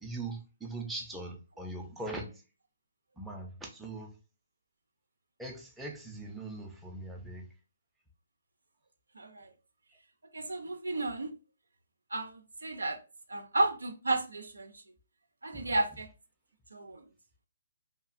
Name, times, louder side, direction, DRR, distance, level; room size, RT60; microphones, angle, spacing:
voice 1, 0.0-2.3 3.2-4.1 5.4-7.5 15.6-15.7, right 2 dB, 5° right, 0.5 m, -41 dB
voice 2, 9.2-9.5 10.3-11.3 12.1-13.0 13.3-14.7 15.4-16.1 16.7-17.0, right 2 dB, 85° right, 0.5 m, -32 dB
2.9 x 2.5 x 2.4 m
figure-of-eight pair, 135°, 0 cm